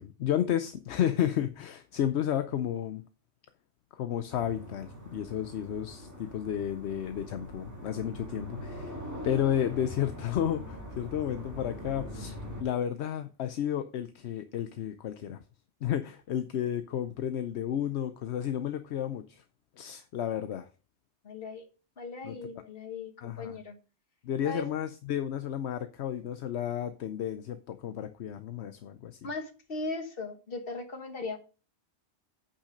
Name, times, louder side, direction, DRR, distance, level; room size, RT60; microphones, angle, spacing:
voice 1, 0.0-3.0 3.9-9.0 9.2-15.4 15.8-19.4 19.8-20.7 22.2-22.4 23.2-23.6 24.2-29.2, left 10 dB, 75° left, 0.9 m, -32 dB
sound 1, 4.3-12.6, equal, 15° right, 2.1 m, -42 dB
voice 2, 21.2-21.7 22.0-23.7 24.4-24.7 29.2-31.4, left 3 dB, 55° left, 1.6 m, -38 dB
8.5 x 5.8 x 5.0 m
omnidirectional pair, 1.1 m